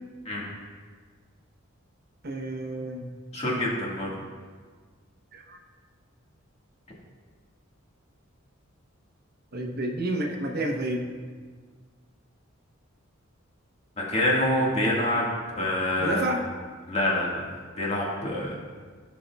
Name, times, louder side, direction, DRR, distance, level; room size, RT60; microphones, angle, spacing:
voice 1, 2.2-3.1 5.3-5.6 9.5-11.1 16.0-16.4, right 1 dB, 50° right, 1 dB, 0.9 m, -30 dB
voice 2, 3.3-4.1 14.0-16.2 16.9-18.5, left 1 dB, 30° left, -4 dB, 1.7 m, -26 dB
15.5 x 5.3 x 2.3 m, 1.5 s
head